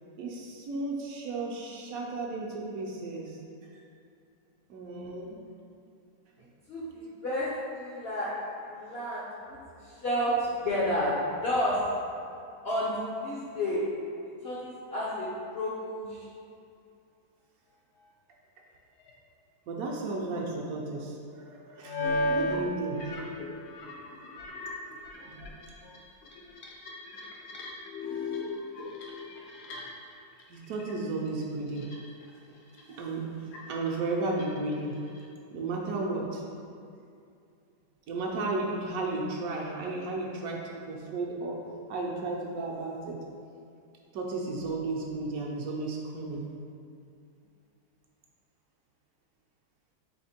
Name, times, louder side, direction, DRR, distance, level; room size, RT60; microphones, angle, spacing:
voice 1, 0.2-3.4 4.7-5.4 19.7-22.0 22.3-23.0 24.1-24.2 25.3-25.4 30.5-31.9 32.5-32.6 32.9-33.3 33.7-34.9 35.5-36.4 38.1-40.6 40.9-41.6 41.9-43.2 44.1-46.4, right 2 dB, 70° right, -2 dB, 1.0 m, -33 dB
voice 2, 6.7-7.5 7.8-9.2 10.0-11.1 11.4-11.8 12.6-13.8 14.4-16.2, equal, 60° left, -8 dB, 0.6 m, -31 dB
sound 1, 19.0-19.1 21.8-22.6 22.8-30.1 30.4-30.9 31.2-32.3 32.7-33.0 33.5-35.2, left 1 dB, 80° left, 1.2 m, -36 dB
3.5 x 3.3 x 4.2 m, 2.5 s
omnidirectional pair, 1.7 m